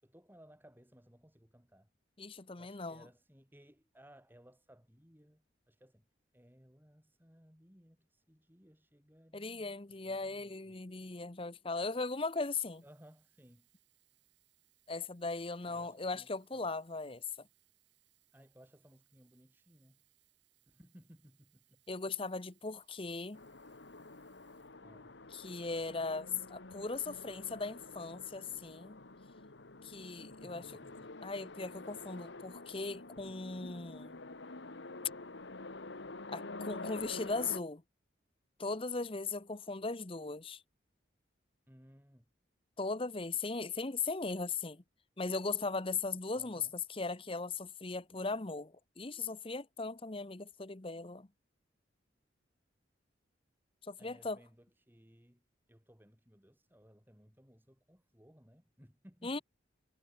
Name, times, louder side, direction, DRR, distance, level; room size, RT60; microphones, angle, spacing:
voice 1, 0.0-1.9 2.5-6.1 6.3-10.8 12.8-13.7 15.6-16.7 18.3-20.0 20.7-21.8 24.8-25.1 30.3-31.2 41.7-42.3 46.4-46.7 54.0-59.4, equal, 10° right, 6.1 m, -61 dB
voice 2, 2.2-3.0 9.3-12.8 14.9-17.5 21.9-23.4 25.3-29.0 29.8-30.6 31.2-34.2 36.3-37.8 38.6-40.6 42.8-44.8 45.2-51.3 53.9-54.4 59.2-59.4, left 4 dB, 30° left, 0.9 m, -38 dB
Sink (filling or washing), 11.7-25.5 26.2-26.3, right 15 dB, 70° right, 7.5 m, -74 dB
sound 1, 23.3-37.6, left 2 dB, 75° left, 1.7 m, -48 dB
head